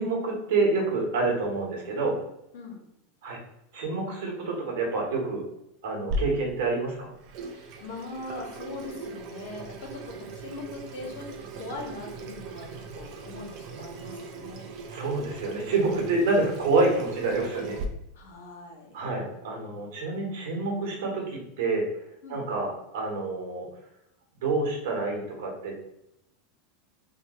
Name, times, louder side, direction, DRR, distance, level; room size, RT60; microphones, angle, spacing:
voice 1, 0.0-2.2 3.2-3.4 3.7-5.4 5.8-7.1 14.9-17.8 18.9-21.9 22.3-23.7 24.4-25.8, right 3 dB, 75° right, 0 dB, 1.2 m, -27 dB
Water tap faucet / Sink (filling or washing), 6.1-17.8, right 2 dB, 55° right, 0.6 m, -39 dB
voice 2, 7.5-14.7 18.1-19.0 19.7-20.1 22.2-22.5, left 2 dB, 75° left, 1 dB, 1.0 m, -41 dB
2.9 x 2.2 x 4.2 m, 0.83 s
hypercardioid pair, 105°, 0 cm